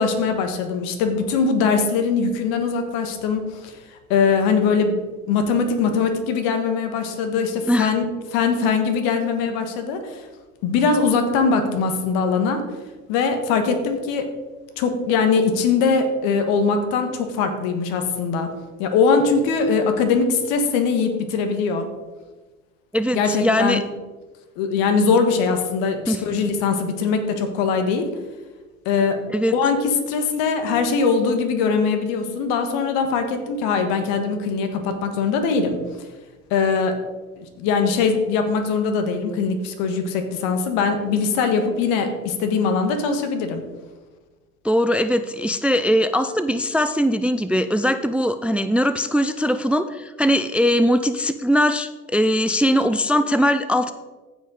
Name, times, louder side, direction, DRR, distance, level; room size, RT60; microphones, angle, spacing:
voice 1, 0.0-3.7 4.1-8.0 8.3-10.2 10.6-12.6 13.1-14.3 14.8-18.5 18.8-21.9 23.1-23.8 24.6-28.1 28.8-29.2 29.5-35.8 36.5-37.0 37.4-43.6, left 5 dB, 70° left, 7 dB, 1.4 m, -21 dB
voice 2, 22.9-23.8 26.1-26.2 29.3-29.5 44.6-53.9, equal, 5° right, 12 dB, 0.4 m, -20 dB
15.5 x 5.3 x 3.9 m, 1.2 s
hypercardioid pair, 70°, 39 cm